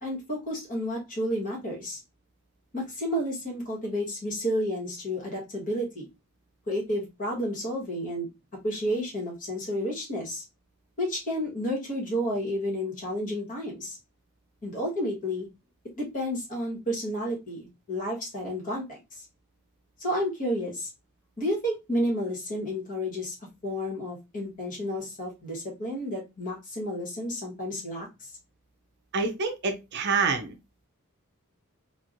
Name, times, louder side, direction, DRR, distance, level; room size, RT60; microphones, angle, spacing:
voice 1, 0.0-2.0 2.7-6.0 6.7-8.3 8.6-10.4 11.0-14.0 14.6-15.5 16.0-19.0 20.0-20.9 21.4-23.3 23.6-28.3, equal, 40° left, 1.4 m, -31 dB
voice 2, 29.1-30.6, right 4 dB, 50° right, 0.5 m, -27 dB
3.0 x 2.4 x 2.6 m
head